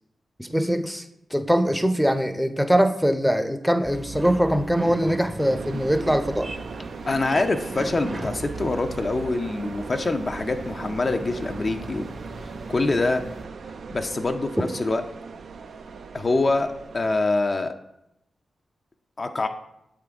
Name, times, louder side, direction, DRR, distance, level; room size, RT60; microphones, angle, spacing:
voice 1, 0.4-1.1 1.3-6.5, equal, ahead, 8 dB, 0.5 m, -22 dB
sound 1, 3.8-13.5, right 2 dB, 45° right, 0.8 m, -38 dB
sound 2, 5.4-17.2, right 5 dB, 75° right, 0.3 m, -39 dB
voice 2, 7.1-12.1 12.7-13.2 13.9-15.0 16.1-17.7 19.2-19.5, left 2 dB, 45° left, 5 dB, 0.5 m, -25 dB
7.4 x 3.6 x 3.5 m, 0.84 s
supercardioid pair, 45°, 0 cm